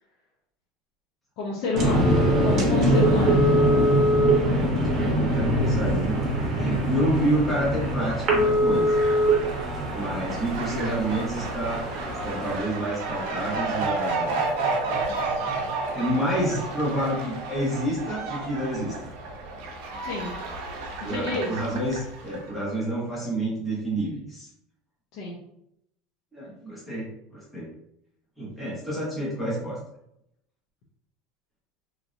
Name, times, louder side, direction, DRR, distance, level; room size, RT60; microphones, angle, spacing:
voice 1, 1.4-3.7 20.0-20.3 21.0-21.5 25.1-25.4, left 2 dB, 55° left, -3 dB, 0.6 m, -29 dB
sound 1, 1.7-12.6, right 1 dB, 30° right, 0.9 m, -23 dB
voice 2, 4.5-9.0 9.9-11.8 12.2-14.4 15.9-18.9 21.0-24.5 26.3-27.0 27.3-27.7 28.4-29.8, right 1 dB, 5° left, -9 dB, 1.0 m, -29 dB
Fowl, 5.2-22.5, right 3 dB, 70° right, 0.6 m, -33 dB
3.1 x 2.6 x 2.5 m, 0.79 s
cardioid pair, 160°, 0 cm